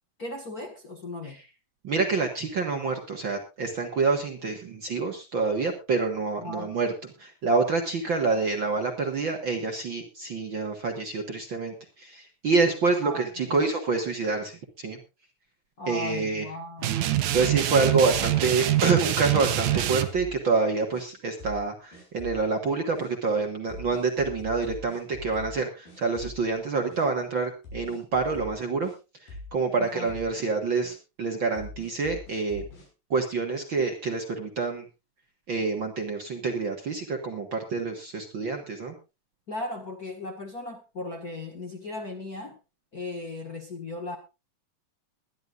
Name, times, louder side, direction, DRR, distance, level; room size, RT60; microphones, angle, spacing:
voice 1, 0.2-1.4 6.4-6.7 13.0-13.6 15.8-17.2 29.8-30.1 39.5-42.6 42.9-44.2, left 2 dB, 35° left, 2 dB, 1.6 m, -37 dB
voice 2, 1.8-6.9 7.2-15.0 15.9-16.4 17.3-28.9 29.5-32.6 33.1-34.8 35.5-38.9, right 4 dB, 45° right, 4 dB, 1.8 m, -27 dB
sound 1, 16.8-20.1, right 13 dB, 70° right, 2.4 m, -25 dB
sound 2, 17.3-18.4 18.9-19.0 19.6-20.4 20.9-21.0 21.4-21.7 21.9-22.5 22.9-23.1 23.7-25.6 25.9-26.6 26.9-27.0 27.6-29.0 29.3-29.6 29.8-30.3 30.8-31.0 31.6-32.9, left 2 dB, 80° left, 7.9 m, -43 dB
22.0 x 11.0 x 2.5 m, 0.28 s
omnidirectional pair, 3.9 m